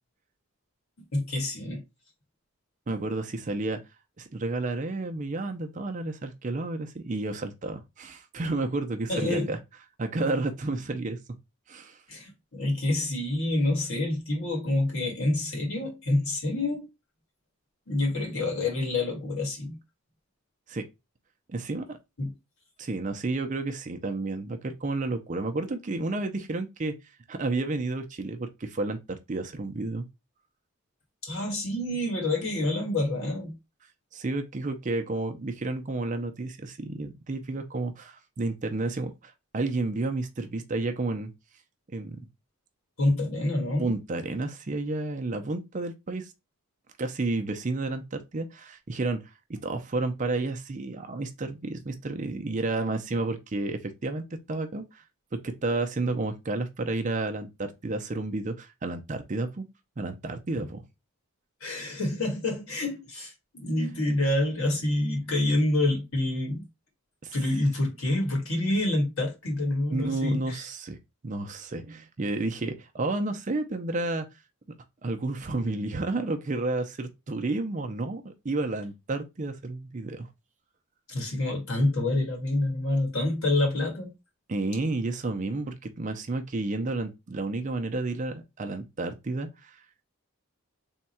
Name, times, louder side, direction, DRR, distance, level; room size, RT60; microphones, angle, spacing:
voice 1, 1.1-1.8 9.1-9.5 12.1-16.9 17.9-19.8 22.2-22.3 31.2-33.5 43.0-43.9 61.6-66.7 67.3-70.6 81.1-84.1, left 2 dB, 70° left, 1.6 m, -27 dB
voice 2, 2.9-3.8 4.2-9.6 10.0-11.2 11.7-12.0 20.7-20.9 21.5-22.0 22.8-26.9 27.3-30.1 34.1-41.3 41.9-42.3 43.8-46.3 47.0-49.2 49.5-55.0 55.3-59.6 60.0-60.8 67.2-67.3 69.9-71.0 71.2-74.3 75.0-80.3 84.5-89.8, right 2 dB, 35° right, 0.5 m, -31 dB
3.6 x 2.3 x 4.2 m
head